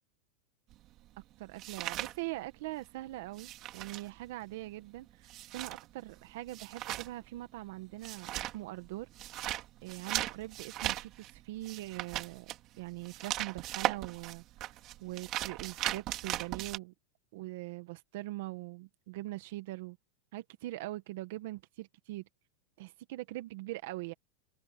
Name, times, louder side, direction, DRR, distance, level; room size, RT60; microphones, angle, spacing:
sound 1, 0.7-2.9 3.1-16.8, right 15 dB, 35° right, 2.5 m, -38 dB
voice 1, 1.4-9.1 9.8-12.5 12.8-14.4 15.0-16.9 17.3-20.0 20.3-22.2 22.8-24.1, right 17 dB, 65° right, 1.6 m, -42 dB
supercardioid pair, 145°, 0 cm